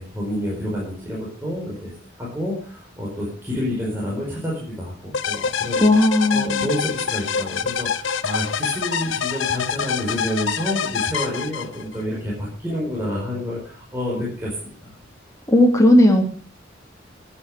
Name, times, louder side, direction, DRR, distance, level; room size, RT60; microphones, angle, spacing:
voice 1, 0.0-1.9 2.2-5.8 6.3-15.0, equal, 10° right, -5 dB, 5.0 m, -29 dB
sound 1, 5.1-12.0, left 6 dB, 80° left, 0.9 m, -26 dB
voice 2, 5.8-6.7 15.5-16.2, left 1 dB, 15° left, 2 dB, 2.8 m, -15 dB
14.5 x 10.0 x 6.7 m, 0.43 s
head